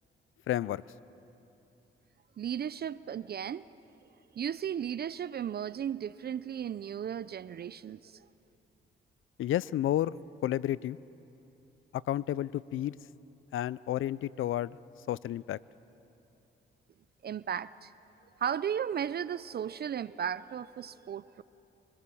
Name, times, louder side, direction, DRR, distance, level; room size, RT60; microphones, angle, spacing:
voice 1, 0.5-0.8 9.4-11.0 11.9-12.9 13.5-14.7 15.1-15.6, left 13 dB, 75° left, 21 dB, 0.5 m, -31 dB
voice 2, 2.4-3.7 4.3-8.3 17.2-17.9 18.4-21.4, right 9 dB, 50° right, 17 dB, 0.5 m, -35 dB
24.5 x 20.0 x 7.1 m, 2.9 s
cardioid pair, 65°, 21 cm